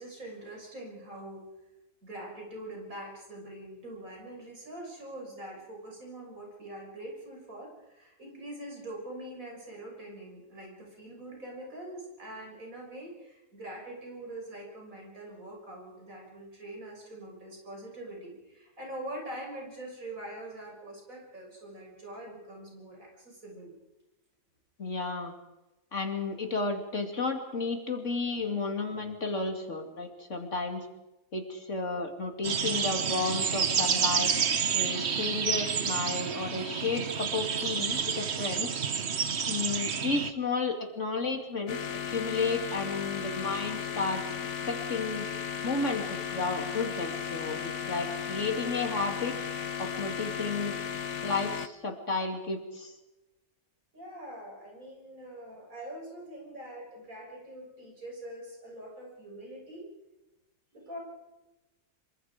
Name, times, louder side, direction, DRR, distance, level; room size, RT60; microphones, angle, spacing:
voice 1, 0.0-1.5 2.0-23.8 53.9-59.9 60.7-61.0, right 1 dB, 75° right, -1 dB, 7.2 m, -44 dB
voice 2, 24.8-25.3 25.9-30.9 31.3-34.3 34.7-38.7 39.4-44.2 44.7-45.3 45.6-49.4 49.8-50.8 51.2-52.9, left 3 dB, 55° left, 4 dB, 3.1 m, -32 dB
sound 1, 32.4-40.3, right 6 dB, 50° right, 1.3 m, -29 dB
sound 2, 41.7-51.7, left 7 dB, 75° left, 1.5 m, -35 dB
26.5 x 23.5 x 5.2 m, 1.0 s
omnidirectional pair, 1.5 m